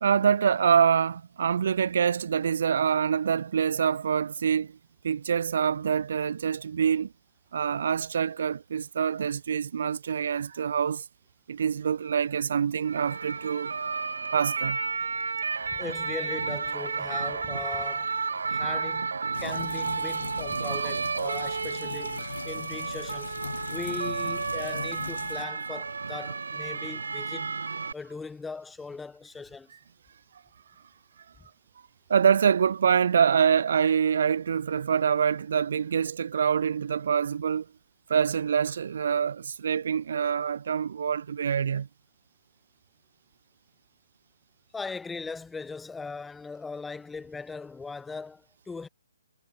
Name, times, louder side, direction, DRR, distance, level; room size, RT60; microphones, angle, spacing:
voice 1, 0.0-4.7 5.0-7.1 7.5-11.0 11.5-13.7 14.3-14.8 20.6-20.9 22.3-22.4 32.1-37.6 38.1-41.9, right 7 dB, 60° right, 1.4 m, -25 dB
sound 1, 12.8-27.9, right 5 dB, 80° right, 1.8 m, -32 dB
voice 2, 15.8-18.1 18.5-23.4 23.7-27.5 27.9-29.7 31.4-31.5 44.7-48.9, left 4 dB, 5° left, 2.9 m, -39 dB
sound 2, 19.3-25.4, left 5 dB, 80° left, 2.2 m, -40 dB
hypercardioid pair, 150°, 0 cm